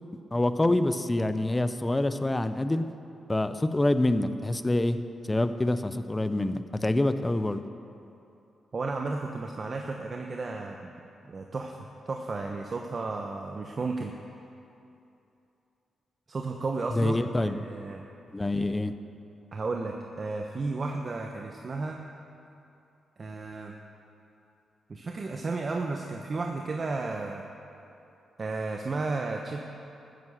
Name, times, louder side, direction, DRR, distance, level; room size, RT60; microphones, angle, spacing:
voice 1, 0.3-2.8 3.3-5.0 5.3-7.6 16.9-17.6 18.3-18.9, left 1 dB, 20° left, 10 dB, 0.6 m, -26 dB
voice 2, 8.7-10.9 11.2-14.1 16.3-18.0 19.5-22.0 23.2-23.7 24.9-27.4 28.4-29.6, right 3 dB, 45° right, 2 dB, 0.9 m, -33 dB
14.0 x 9.4 x 6.5 m, 2.7 s
cardioid pair, 70°, 0 cm